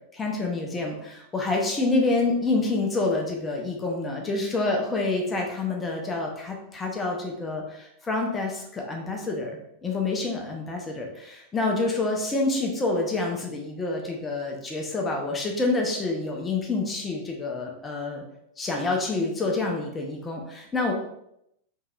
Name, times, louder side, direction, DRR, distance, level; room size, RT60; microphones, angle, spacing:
voice 1, 0.1-9.5 9.8-18.2 18.6-20.9, left 3 dB, 15° left, 1 dB, 0.7 m, -27 dB
4.5 x 3.2 x 2.4 m, 0.78 s
figure-of-eight pair, 90°, 0 cm